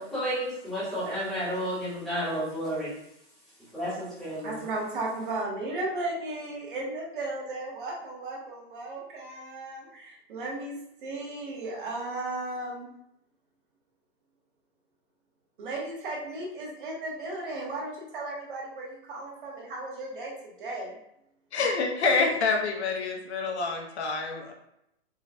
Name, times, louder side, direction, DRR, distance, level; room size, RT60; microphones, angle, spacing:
voice 1, 0.0-2.9 3.7-4.6, equal, ahead, -12 dB, 0.8 m, -31 dB
voice 2, 4.4-12.9 15.6-21.0, right 2 dB, 50° right, -2 dB, 1.0 m, -35 dB
voice 3, 21.5-24.5, left 4 dB, 80° left, 2 dB, 0.8 m, -27 dB
3.8 x 2.1 x 2.6 m, 0.79 s
hypercardioid pair, 170°, 33 cm